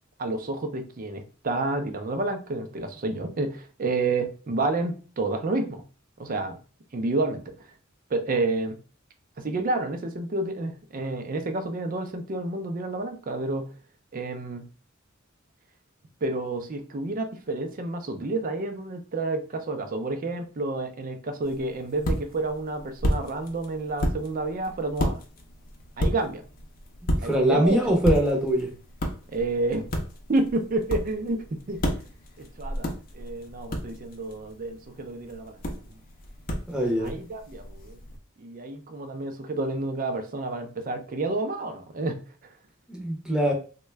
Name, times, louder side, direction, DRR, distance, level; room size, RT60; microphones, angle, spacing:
voice 1, 0.2-5.8 6.2-6.6 6.9-7.5 8.1-8.8 9.4-13.7 14.1-14.7 16.2-25.2 26.0-26.4 27.2-28.0 29.3-29.9 30.3-32.0 32.4-35.6 37.0-38.0 38.4-42.2, right 2 dB, 45° right, 0.5 m, -29 dB
sound 1, 21.4-38.2, equal, 45° left, 0.6 m, -33 dB
voice 2, 27.2-28.7 36.7-37.1 42.9-43.5, right 1 dB, 5° right, 0.7 m, -23 dB
3.5 x 2.2 x 3.2 m
head